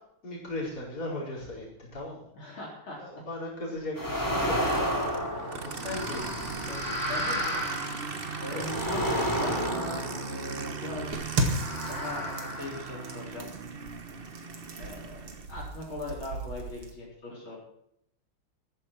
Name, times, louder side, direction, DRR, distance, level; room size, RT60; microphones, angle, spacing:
voice 1, 0.2-1.7 1.9-2.3 3.0-4.6 5.6-6.2 6.6-7.0 8.5-8.6, left 2 dB, 45° left, -4 dB, 5.3 m, -37 dB
voice 2, 2.3-3.0 5.3-6.4 7.1-7.7 8.4-9.1 9.4-11.2 11.9-12.3 12.6-13.5 14.8-17.6, left 2 dB, 70° left, -5 dB, 4.7 m, -41 dB
sound 1, 4.0-10.7 11.4-13.2, equal, 10° left, 3.2 m, -32 dB
Aircraft, 4.3-15.5, right 5 dB, 40° right, 0.8 m, -38 dB
sound 2, 11.1-16.9, right 2 dB, 85° right, 2.9 m, -36 dB
14.5 x 14.0 x 4.5 m, 0.74 s
omnidirectional pair, 2.3 m